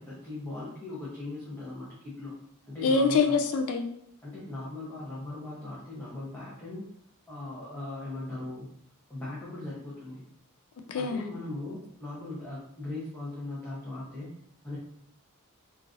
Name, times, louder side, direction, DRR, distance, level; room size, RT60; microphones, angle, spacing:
voice 1, 0.0-2.4 2.7-3.4 4.2-6.9 7.3-8.7 9.1-10.2 10.9-14.3 14.6-14.8, left 2 dB, 10° left, -9 dB, 0.6 m, -39 dB
voice 2, 2.8-3.9 10.9-11.2, left 4 dB, 70° left, 5 dB, 0.3 m, -24 dB
3.1 x 2.4 x 2.4 m, 0.70 s
head